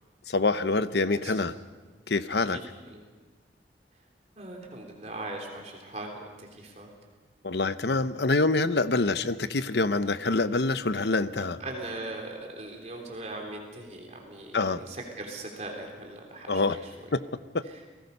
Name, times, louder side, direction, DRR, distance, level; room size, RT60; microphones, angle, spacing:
voice 1, 0.3-1.5 2.1-2.6 7.4-11.6 14.5-14.8 16.5-16.8 17.1-17.2 17.5-17.6, left 3 dB, 70° left, 12 dB, 0.8 m, -26 dB
voice 2, 1.0-1.5 2.5-3.0 4.4-6.9 11.6-17.1 17.6-17.8, right 2 dB, 40° right, 1 dB, 3.4 m, -40 dB
29.5 x 19.0 x 5.5 m, 1.3 s
head